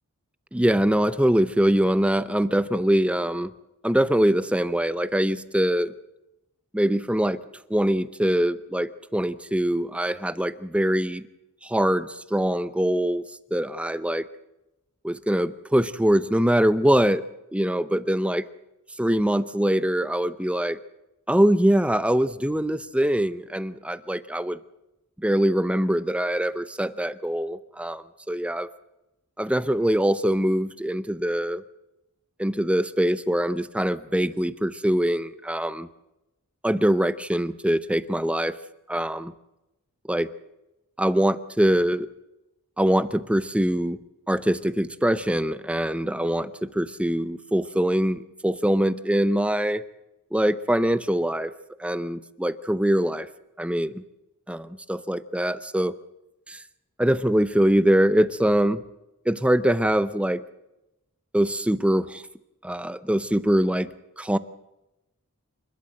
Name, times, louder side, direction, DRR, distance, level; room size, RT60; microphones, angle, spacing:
voice 1, 0.5-3.5 3.8-5.9 6.7-7.4 7.7-11.2 11.6-13.2 13.5-14.3 15.0-17.2 17.5-18.4 19.0-20.8 21.3-24.6 25.2-28.7 29.4-31.6 32.4-35.9 36.6-38.6 38.9-39.3 40.1-40.3 41.0-42.1 42.8-44.0 44.3-49.8 50.3-51.5 51.8-53.3 53.6-54.0 54.5-55.9 56.5-56.6 57.0-58.8 59.3-60.4 61.3-62.2 62.6-63.9 64.2-64.4, right 1 dB, 5° right, 14 dB, 0.7 m, -23 dB
27.5 x 12.5 x 7.8 m, 0.92 s
head